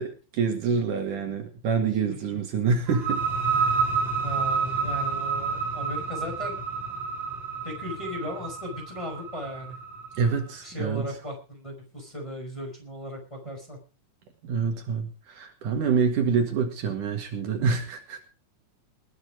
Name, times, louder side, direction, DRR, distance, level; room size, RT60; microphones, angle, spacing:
voice 1, 0.0-3.2 3.5-3.9 10.2-11.1 14.4-18.2, right 5 dB, 70° right, 5 dB, 3.3 m, -26 dB
sound 1, 2.9-10.4, right 5 dB, 35° right, 3.7 m, -29 dB
voice 2, 4.2-6.7 7.6-9.8 10.6-13.8, left 1 dB, 10° left, 1 dB, 5.0 m, -36 dB
20.5 x 8.9 x 4.9 m, 0.35 s
omnidirectional pair, 3.9 m